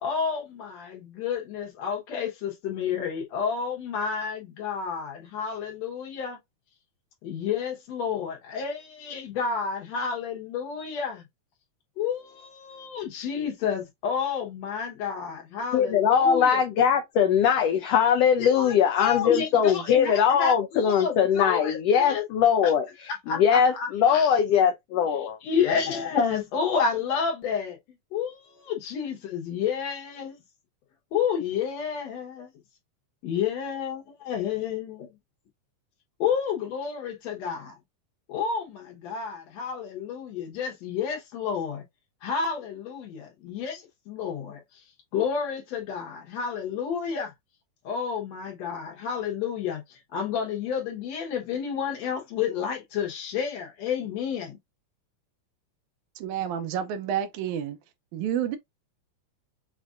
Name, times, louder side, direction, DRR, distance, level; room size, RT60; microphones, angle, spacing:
voice 1, 0.0-6.4 7.2-11.2 12.0-16.6 18.4-22.2 22.6-22.7 23.3-24.3 25.4-27.8 28.1-30.4 31.1-32.5 33.2-35.1 36.2-37.8 38.3-41.8 42.2-44.6 45.1-47.3 47.8-54.6, left 6 dB, 65° left, 2.1 m, -30 dB
voice 2, 15.7-22.8 23.3-25.4, left 8 dB, 85° left, 1.4 m, -21 dB
voice 3, 56.2-57.8 58.1-58.6, right 9 dB, 80° right, 1.9 m, -29 dB
6.2 x 2.5 x 2.4 m
omnidirectional pair, 3.5 m